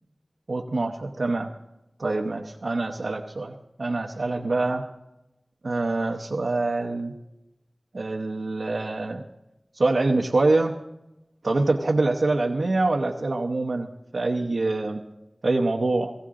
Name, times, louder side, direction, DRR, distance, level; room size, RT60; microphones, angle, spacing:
voice 1, 0.5-1.5 2.0-4.9 5.6-7.1 7.9-9.2 9.7-10.8 11.4-15.1 15.4-16.1, right 2 dB, 90° right, 0 dB, 0.9 m, -25 dB
17.0 x 15.5 x 3.7 m, 0.91 s
wide cardioid pair, 55°, 0 cm